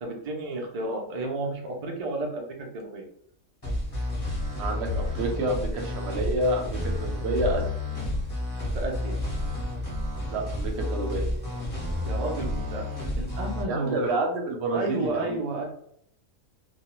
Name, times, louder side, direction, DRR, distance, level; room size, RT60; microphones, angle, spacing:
voice 1, 0.0-3.1 8.7-9.2 12.0-14.0 14.7-15.7, right 2 dB, 85° right, 0 dB, 0.3 m, -32 dB
sound 1, 3.6-13.6, left 1 dB, 20° left, 0.7 m, -30 dB
voice 2, 4.6-7.6 10.3-11.3 13.7-15.4, right 2 dB, 65° right, 1 dB, 0.8 m, -28 dB
2.3 x 2.1 x 2.9 m, 0.69 s
omnidirectional pair, 1.5 m